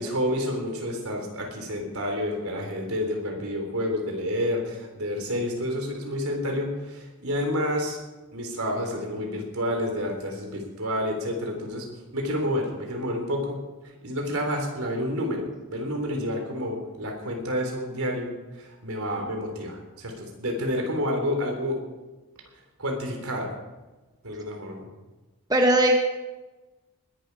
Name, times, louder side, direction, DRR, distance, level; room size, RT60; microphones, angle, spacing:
voice 1, 0.0-8.0 8.3-11.9 12.1-18.3 18.6-21.8 22.8-23.5 24.2-24.9, equal, 80° right, 2 dB, 3.9 m, -29 dB
voice 2, 25.5-26.0, right 1 dB, 20° right, 2 dB, 1.2 m, -20 dB
20.0 x 11.5 x 4.9 m, 1.2 s
head